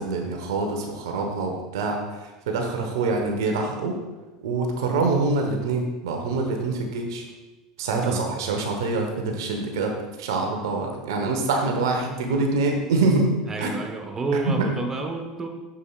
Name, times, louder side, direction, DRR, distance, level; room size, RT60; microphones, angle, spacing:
voice 1, 0.0-4.0 4.4-7.2 7.8-13.3 13.6-13.7 14.3-14.7, right 3 dB, 70° right, 2 dB, 1.1 m, -25 dB
voice 2, 13.5-15.5, right 3 dB, 25° right, 4 dB, 1.1 m, -29 dB
8.2 x 7.2 x 2.4 m, 1.1 s
hypercardioid pair, 80°, 2 cm